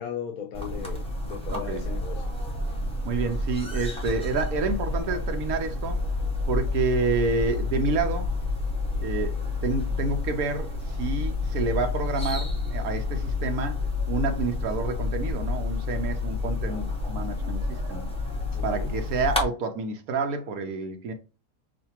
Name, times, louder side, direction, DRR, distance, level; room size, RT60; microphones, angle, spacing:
voice 1, 0.0-2.4 18.5-18.9, left 8 dB, 80° left, 1.2 m, -37 dB
sound 1, 0.5-19.4, left 3 dB, 5° left, 1.0 m, -29 dB
voice 2, 1.5-1.8 3.0-6.0 6.5-8.3 9.0-18.1 18.6-21.1, right 4 dB, 85° right, 1.3 m, -29 dB
6.4 x 2.5 x 2.9 m
omnidirectional pair, 1.5 m